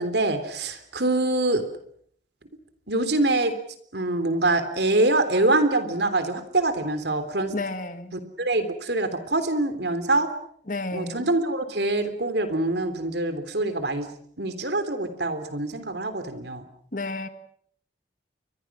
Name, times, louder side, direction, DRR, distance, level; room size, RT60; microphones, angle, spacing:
voice 1, 0.0-1.6 2.9-3.5 3.9-7.5 8.1-10.3 10.9-14.1 14.4-16.6, right 2 dB, 65° right, 3.4 m, -25 dB
voice 2, 7.5-8.1 10.7-11.3 16.9-17.3, left 2 dB, 45° left, 1.8 m, -31 dB
29.5 x 24.0 x 6.2 m
head